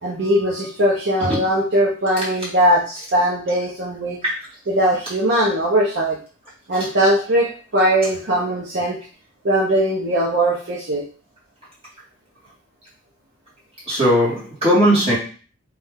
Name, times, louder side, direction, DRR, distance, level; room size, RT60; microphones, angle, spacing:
voice 1, 0.0-4.2 4.7-6.2 6.7-9.0 9.4-11.0, right 1 dB, 55° right, -4 dB, 0.8 m, -20 dB
voice 2, 13.9-15.2, equal, 30° right, -8 dB, 2.0 m, -17 dB
3.3 x 3.3 x 3.6 m, 0.39 s
head